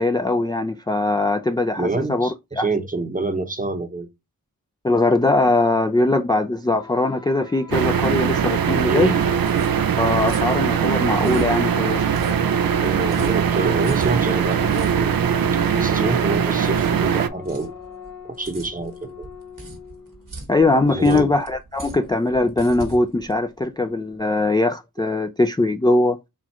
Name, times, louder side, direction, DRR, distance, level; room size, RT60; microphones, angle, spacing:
voice 1, 0.0-2.3 2.6-2.7 4.8-9.1 10.0-12.1 20.5-26.2, left 2 dB, 15° left, 0.3 m, -21 dB
voice 2, 1.8-4.1 8.9-9.2 12.8-15.1 15.7-17.8 18.4-19.3 20.9-21.3, right 3 dB, 25° right, 0.8 m, -26 dB
sound 1, 6.6-20.4, left 3 dB, 80° left, 1.7 m, -41 dB
sound 2, 7.7-17.3, right 7 dB, 90° right, 0.5 m, -21 dB
sound 3, 9.3-24.2, right 1 dB, 70° right, 1.4 m, -40 dB
4.4 x 2.4 x 4.2 m
wide cardioid pair, 65°, 34 cm